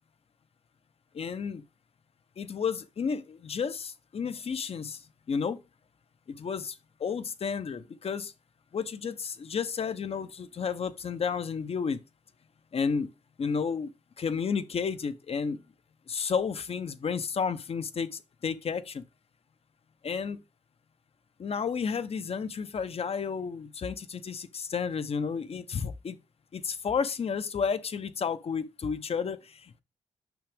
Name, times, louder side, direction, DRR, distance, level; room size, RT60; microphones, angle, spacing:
voice 1, 1.1-1.6 2.4-5.0 5.3-5.6 6.3-8.3 8.7-12.0 12.7-13.1 13.4-13.9 14.2-15.6 16.1-19.0 20.0-20.4 21.4-26.2 26.5-29.8, left 6 dB, 55° left, 0.7 m, -32 dB
6.2 x 6.0 x 3.5 m
cardioid pair, 65°, 12 cm